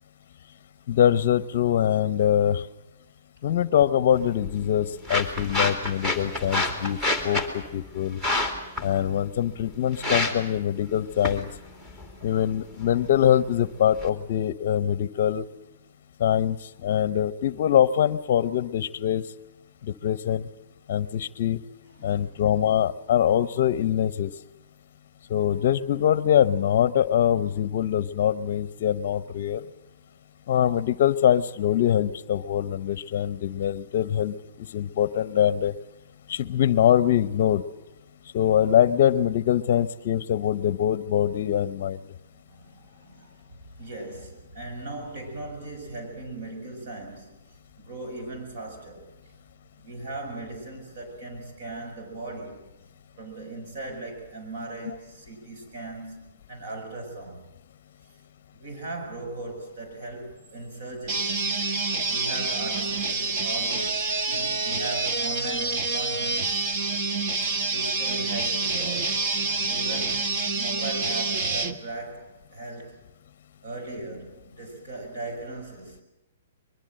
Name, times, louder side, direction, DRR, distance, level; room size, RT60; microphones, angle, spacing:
voice 1, 0.9-2.6 3.4-7.0 7.2-8.2 8.8-11.5 12.2-15.4 16.2-16.6 16.8-19.2 20.0-20.4 20.9-21.6 22.0-24.3 25.3-29.6 30.5-35.7 36.3-37.6 38.3-42.0, left 10 dB, 45° left, 16 dB, 0.7 m, -23 dB
sound 1, 4.1-14.1, left 2 dB, 10° right, 2.7 m, -31 dB
voice 2, 22.0-22.3 42.5-49.1 49.8-52.6 53.2-57.5 58.0-58.2 58.5-66.6 67.6-69.2 69.5-70.3 70.5-73.0 73.6-76.0, right 2 dB, 55° right, 4 dB, 7.2 m, -38 dB
sound 2, 61.1-71.7, right 3 dB, 35° right, 1.4 m, -27 dB
23.0 x 22.0 x 7.7 m, 0.97 s
hypercardioid pair, 165°, 0 cm